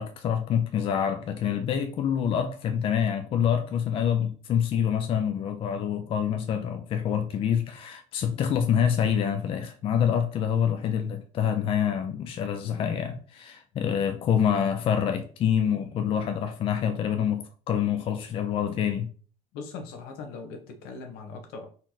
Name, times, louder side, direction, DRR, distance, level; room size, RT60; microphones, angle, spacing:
voice 1, 0.0-19.1, left 8 dB, 35° left, 0.4 m, -26 dB
voice 2, 19.5-21.7, left 4 dB, 75° left, 1.2 m, -40 dB
4.2 x 3.0 x 4.0 m
cardioid pair, 155°, 16 cm